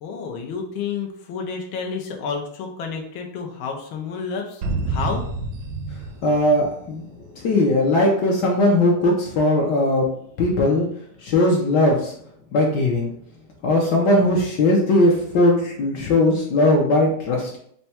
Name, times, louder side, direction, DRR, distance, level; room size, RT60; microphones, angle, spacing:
voice 1, 0.0-5.2, left 5 dB, 90° left, 1 dB, 1.5 m, -30 dB
sound 1, 4.6-7.4, right 3 dB, 70° right, 1.0 m, -29 dB
voice 2, 6.2-7.0 7.4-10.1 10.4-10.9 11.2-12.1 12.5-13.1 13.6-17.6, left 1 dB, 70° left, -1 dB, 1.2 m, -19 dB
4.4 x 2.2 x 4.1 m, 0.66 s
omnidirectional pair, 2.2 m